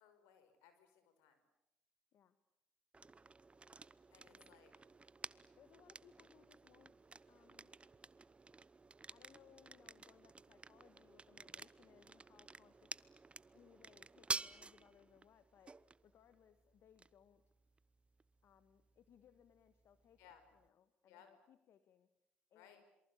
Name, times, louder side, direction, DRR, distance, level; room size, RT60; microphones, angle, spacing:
voice 1, 0.0-1.4 4.1-4.7 20.2-20.4 21.1-21.3 22.5-22.8, left 8 dB, 80° left, 9 dB, 5.3 m, -64 dB
sound 1, 2.9-20.7, right 3 dB, 25° right, 0.9 m, -52 dB
voice 2, 5.6-7.7 9.1-13.1 13.5-17.4 18.4-22.1 22.5-22.8, left 9 dB, 60° left, 11 dB, 1.5 m, -67 dB
27.5 x 24.0 x 8.5 m, 0.88 s
hypercardioid pair, 65°, 5 cm